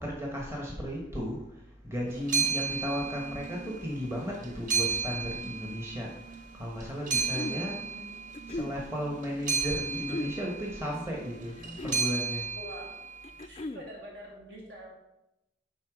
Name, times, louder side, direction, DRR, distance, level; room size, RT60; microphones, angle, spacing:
voice 1, 0.0-1.4 1.8-6.1 6.5-7.8 8.5-12.8, equal, 15° right, -1 dB, 1.1 m, -35 dB
sound 1, 2.1-3.8 4.1-6.4 6.8-13.3, right 5 dB, 45° right, 0.8 m, -33 dB
Middle Age - Female - Clearing Throat, 6.9-7.6 8.3-8.8 9.9-10.4 11.5-12.1 13.2-13.9, left 2 dB, 30° left, 0.3 m, -37 dB
voice 2, 7.1-8.1 12.5-13.1 13.5-14.9, right 1 dB, 65° right, -3 dB, 2.5 m, -45 dB
9.5 x 3.9 x 4.9 m, 0.90 s
head